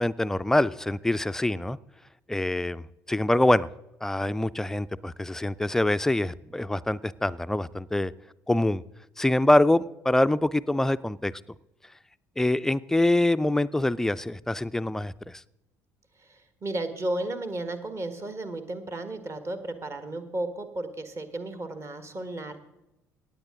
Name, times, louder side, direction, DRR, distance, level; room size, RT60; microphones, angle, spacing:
voice 1, 0.0-1.8 2.3-2.8 3.1-3.7 4.0-8.1 8.5-8.8 9.2-11.3 12.4-15.1, left 1 dB, 5° left, 15 dB, 0.4 m, -24 dB
voice 2, 16.2-22.6, right 2 dB, 30° right, 9 dB, 1.5 m, -34 dB
17.5 x 8.8 x 3.7 m, 0.90 s
figure-of-eight pair, 55°, 9 cm